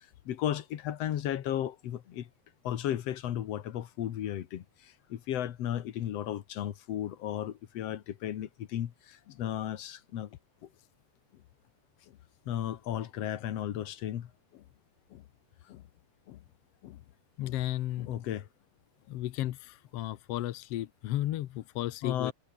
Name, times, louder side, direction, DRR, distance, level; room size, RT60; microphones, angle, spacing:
voice 1, 0.3-2.3 2.6-10.3 12.5-14.3 18.1-18.5 22.0-22.3, left 11 dB, 60° left, 2.1 m, -34 dB
voice 2, 17.4-18.1 19.1-22.3, left 14 dB, 75° left, 1.4 m, -34 dB
omnidirectional pair, 3.8 m